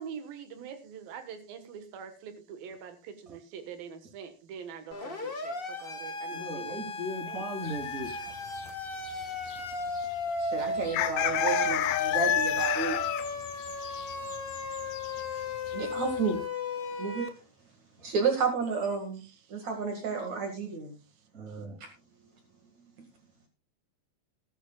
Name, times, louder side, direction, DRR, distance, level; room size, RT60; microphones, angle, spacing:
voice 1, 0.0-6.8 7.3-7.4 13.3-13.4, right 7 dB, 80° right, 3.2 m, -44 dB
Siren, 4.9-17.3, left 2 dB, 55° left, 0.6 m, -35 dB
voice 2, 6.3-8.1 21.3-21.8, right 1 dB, 25° right, 3.5 m, -37 dB
sound 1, 7.6-8.3 8.6-8.7 9.1-9.6 9.9-10.1 10.8-15.3 15.6-15.7 16.1-16.3, left 12 dB, 75° left, 2.1 m, -31 dB
voice 3, 10.4-13.0 15.7-16.4 17.0-17.3 18.0-19.2 19.5-20.9 21.8-21.9, right 5 dB, 55° right, 3.0 m, -31 dB
20.0 x 10.5 x 2.3 m
omnidirectional pair, 4.1 m